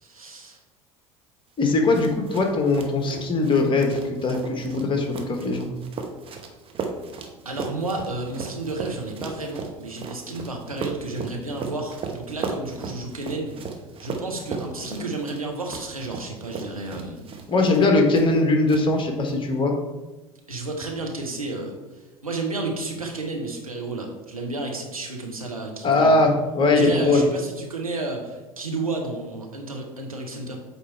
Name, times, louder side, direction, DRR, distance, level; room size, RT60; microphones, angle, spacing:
voice 1, 0.0-0.6 7.4-13.5 14.0-17.2 20.5-21.8 22.2-26.3 26.7-30.6, right 3 dB, 90° right, 1 dB, 1.0 m, -31 dB
voice 2, 1.6-5.7 17.5-19.8 25.8-27.3, left 2 dB, 30° left, 3 dB, 1.2 m, -20 dB
sound 1, 1.6-18.4 18.7-19.3, right 4 dB, 30° right, 1.0 m, -36 dB
8.0 x 3.3 x 4.5 m, 1.1 s
figure-of-eight pair, 70°, 18 cm